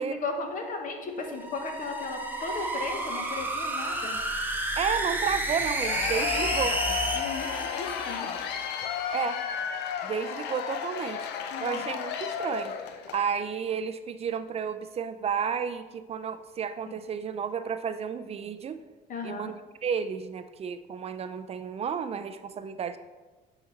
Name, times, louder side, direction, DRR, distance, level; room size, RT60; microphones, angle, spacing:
voice 1, 0.0-4.2 7.1-7.5 7.8-8.4 11.5-11.8 19.1-19.5, left 3 dB, 50° left, 4 dB, 1.2 m, -35 dB
sound 1, 1.2-8.7, right 2 dB, 10° right, 0.9 m, -31 dB
voice 2, 4.8-6.8 9.1-9.4 10.0-11.3 11.6-12.8 13.1-18.8 19.2-19.5 19.8-23.0, right 7 dB, 35° right, 11 dB, 0.4 m, -32 dB
Cheering / Applause / Crowd, 5.6-13.3, left 8 dB, 85° left, 0.6 m, -33 dB
8.8 x 4.0 x 3.9 m, 1.3 s
cardioid pair, 110°, 17 cm